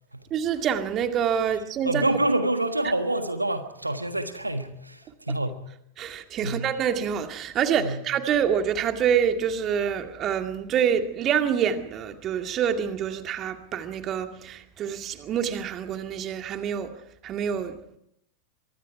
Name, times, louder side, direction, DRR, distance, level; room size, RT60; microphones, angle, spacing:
voice 1, 0.3-2.2 6.0-16.9 17.2-17.8, right 8 dB, 30° right, 2.2 m, -26 dB
voice 2, 1.8-5.7 6.4-6.6 7.8-8.0, right 1 dB, 85° right, 1.5 m, -27 dB
24.5 x 23.5 x 4.8 m
figure-of-eight pair, 90°, 0 cm